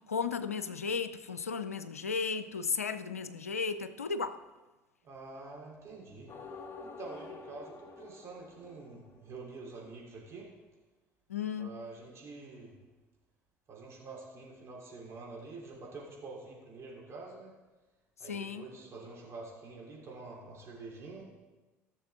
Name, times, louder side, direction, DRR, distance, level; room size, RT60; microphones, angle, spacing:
voice 1, 0.1-4.4 11.3-11.8 18.3-18.7, left 5 dB, 85° left, 0.4 m, -35 dB
voice 2, 5.0-6.5 6.8-10.5 11.6-12.7 13.7-17.5 18.2-21.3, right 3 dB, 35° right, 3.2 m, -47 dB
sound 1, 6.3-9.6, left 4 dB, 30° left, 1.1 m, -48 dB
14.5 x 6.8 x 3.6 m
figure-of-eight pair, 60°, 8 cm